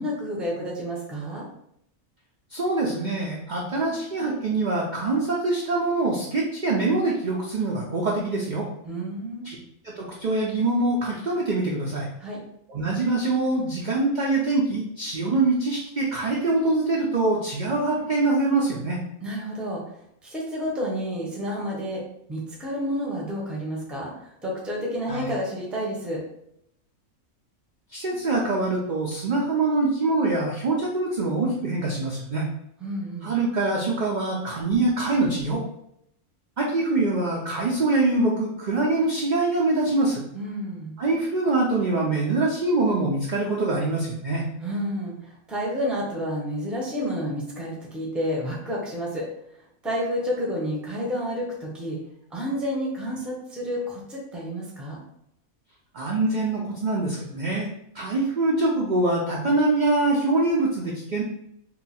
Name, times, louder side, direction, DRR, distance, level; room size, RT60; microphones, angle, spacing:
voice 1, 0.0-1.4 8.8-9.5 12.2-12.4 19.2-19.8 20.2-22.0 22.3-24.1 24.4-26.2 32.8-33.3 40.3-41.0 44.6-49.3 49.8-52.0 52.3-55.0, equal, ahead, -3 dB, 0.5 m, -30 dB
voice 2, 2.5-8.6 9.4-9.6 9.8-12.1 12.7-19.0 25.1-25.3 27.9-32.5 33.2-35.6 36.6-40.2 41.0-44.4 55.9-57.7 57.9-61.2, right 2 dB, 65° right, -2 dB, 0.4 m, -24 dB
2.8 x 2.3 x 4.1 m, 0.75 s
omnidirectional pair, 1.4 m